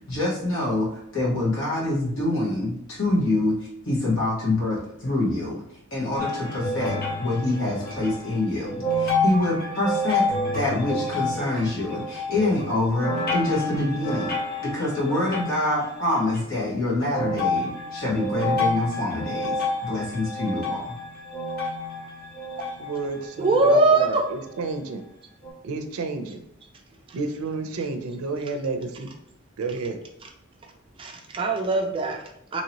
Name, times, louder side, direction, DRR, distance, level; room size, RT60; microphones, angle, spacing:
voice 1, 0.1-3.6 3.8-5.6 5.9-14.3 14.6-19.6 19.8-21.0, left 2 dB, 65° left, -6 dB, 1.3 m, -26 dB
sound 1, 6.2-16.4 17.1-24.0 24.7-24.8 25.4-25.5, left 2 dB, 45° left, 0.7 m, -29 dB
voice 2, 22.8-25.0 25.6-26.4 27.1-29.1 29.6-30.0, right 3 dB, 85° right, 7 dB, 0.4 m, -30 dB
voice 3, 23.4-24.2 27.1-27.2 27.8-27.9 30.2-30.3 30.6-30.7 31.0-32.6, right 2 dB, 25° right, 2 dB, 0.3 m, -22 dB
2.9 x 2.8 x 2.9 m, 0.77 s
head